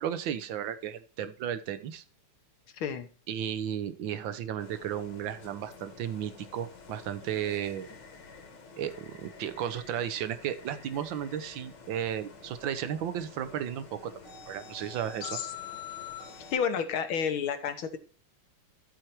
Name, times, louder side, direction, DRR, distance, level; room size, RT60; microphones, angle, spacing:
voice 1, 0.0-2.0 3.3-7.9 8.8-15.4, right 9 dB, 70° right, 12 dB, 1.5 m, -34 dB
voice 2, 2.7-3.1 15.2-15.5 16.5-18.0, left 7 dB, 75° left, 8 dB, 1.9 m, -30 dB
sound 1, 4.6-16.6, left 7 dB, 55° left, 2.1 m, -47 dB
13.5 x 4.7 x 4.4 m, 0.37 s
omnidirectional pair, 2.4 m